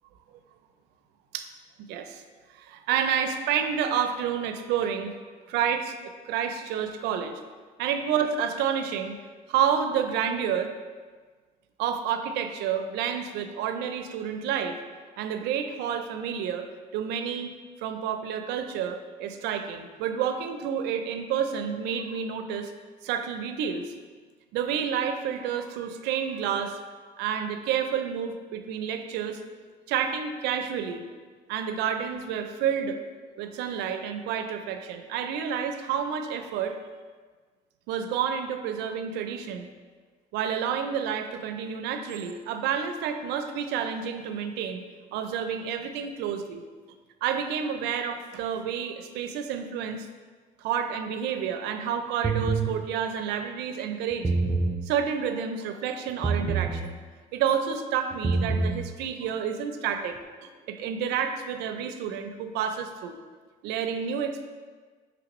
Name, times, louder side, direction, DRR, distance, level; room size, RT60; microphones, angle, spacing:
voice 1, 1.8-2.2 2.6-5.2 5.5-7.4 7.8-9.2 9.5-10.7 11.8-14.8 15.2-17.5 17.8-22.7 23.0-23.9 24.5-26.8 27.2-29.4 29.9-31.0 31.5-33.0 33.4-36.8 37.9-39.7 40.3-44.8 45.1-46.6 47.2-50.1 50.6-54.3 54.8-57.0 57.3-60.2 60.7-63.2 63.6-64.5, right 8 dB, 90° right, 8 dB, 0.4 m, -29 dB
sound 1, 52.2-52.7 54.1-54.8 56.2-56.8 58.1-58.8, right 3 dB, 15° right, 0.4 m, -25 dB
5.8 x 3.0 x 3.0 m, 1.5 s
cardioid pair, 110°, 17 cm